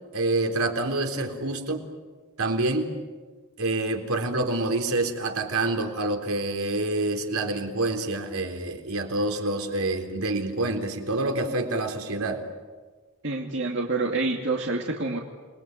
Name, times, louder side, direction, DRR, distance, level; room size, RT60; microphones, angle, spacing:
voice 1, 0.0-1.8 2.4-2.9 3.6-12.4, right 2 dB, 80° right, 4 dB, 3.7 m, -27 dB
voice 2, 13.2-15.2, right 3 dB, 55° right, 0 dB, 2.4 m, -27 dB
29.0 x 21.5 x 9.4 m, 1.4 s
head